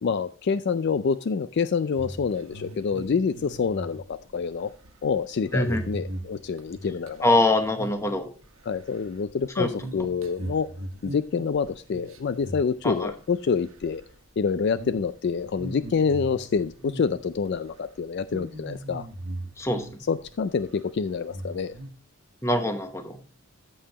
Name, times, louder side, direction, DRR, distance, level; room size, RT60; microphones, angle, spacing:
voice 1, 0.0-4.7 5.0-7.3 8.7-10.7 11.0-14.0 14.4-19.1 20.1-21.7, left 5 dB, 50° left, 0.3 m, -27 dB
sound 1, 2.0-7.4 7.7-8.2 8.5-13.3 13.6-14.1 14.6-15.0 15.4-17.5 17.7-17.9 18.3-20.3 20.6-20.7 21.3-21.9, right 1 dB, 75° right, 1.4 m, -39 dB
voice 2, 5.5-5.8 7.2-8.3 9.6-9.7 12.8-13.1 19.6-19.9 22.4-23.2, left 1 dB, 15° left, 1.0 m, -23 dB
15.0 x 5.6 x 2.9 m
head